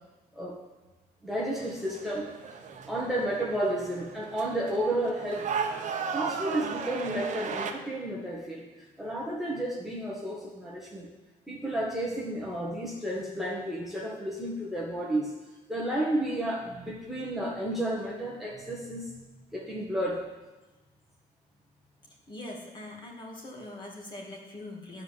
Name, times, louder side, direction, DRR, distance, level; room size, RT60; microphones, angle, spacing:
voice 1, 1.2-2.3 2.8-5.5 6.1-11.1 11.5-15.3 15.7-20.2, right 1 dB, ahead, -5 dB, 1.6 m, -32 dB
sound 1, 1.5-7.7, right 6 dB, 45° right, 1.0 m, -36 dB
voice 2, 22.3-25.0, left 1 dB, 25° left, -2 dB, 2.4 m, -42 dB
11.0 x 4.8 x 7.3 m, 1.1 s
cardioid pair, 110°, 17 cm